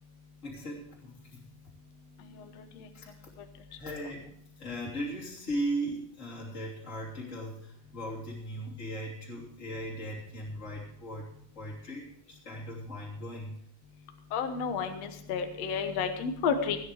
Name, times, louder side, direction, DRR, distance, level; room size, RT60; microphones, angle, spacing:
voice 1, 0.4-1.5 2.9-3.3 3.8-4.3 4.6-11.3 11.5-13.6, right 1 dB, 20° left, -6 dB, 2.8 m, -38 dB
voice 2, 14.3-16.8, left 6 dB, 60° left, 6 dB, 1.9 m, -30 dB
17.5 x 9.5 x 4.9 m, 0.68 s
omnidirectional pair, 4.1 m